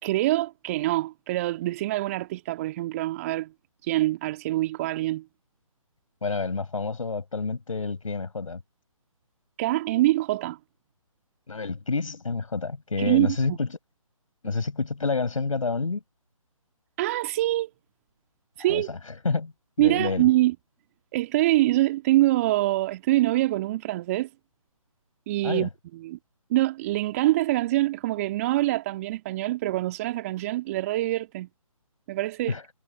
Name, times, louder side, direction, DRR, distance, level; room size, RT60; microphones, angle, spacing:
voice 1, 0.0-3.5 3.8-5.2 9.6-10.6 13.0-13.6 17.0-17.7 18.6-19.0 19.8-20.5 21.1-24.3 25.3-26.2 26.5-31.5 32.1-32.6, right 16 dB, 25° right, 1.7 m, -25 dB
voice 2, 6.2-8.6 11.5-13.7 14.4-16.0 18.7-19.0 19.2-19.5 19.8-20.3 25.4-25.7 32.5-32.6, left 4 dB, 65° left, 5.3 m, -28 dB
figure-of-eight pair, 145°, 18 cm